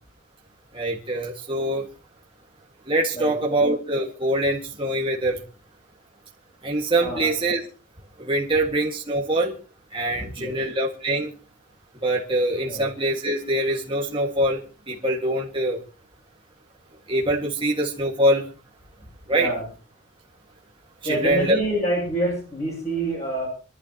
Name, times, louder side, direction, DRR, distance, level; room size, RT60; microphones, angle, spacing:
voice 1, 0.7-1.9 2.9-5.4 6.6-7.6 8.2-9.5 9.9-11.3 12.0-14.6 14.9-15.8 17.1-18.5 19.3-19.5 21.0-21.6, right 1 dB, 25° right, -2 dB, 1.8 m, -24 dB
voice 2, 10.1-10.5 12.7-12.9 19.3-19.6 21.0-23.5, right 1 dB, 35° left, -5 dB, 7.7 m, -26 dB
26.0 x 12.0 x 2.9 m, 0.36 s
head